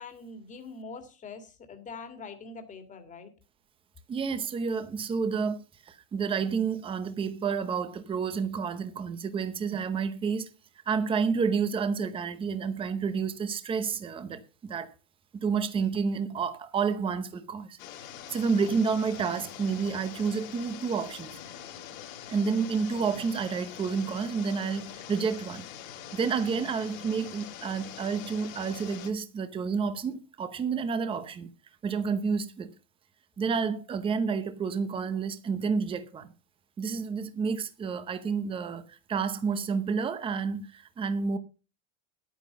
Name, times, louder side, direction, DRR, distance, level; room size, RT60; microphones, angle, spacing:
voice 1, 0.0-3.3, left 4 dB, 20° left, 2.0 m, -43 dB
voice 2, 4.1-5.6 5.9-10.5 10.9-14.9 15.3-17.8 18.3-21.4 22.3-25.6 26.1-31.5 31.8-32.7 33.4-36.3 36.8-41.4, right 5 dB, 15° right, 0.8 m, -30 dB
sound 1, 17.8-29.1, left 10 dB, 70° left, 3.3 m, -44 dB
10.5 x 9.3 x 5.4 m
supercardioid pair, 155°, 41 cm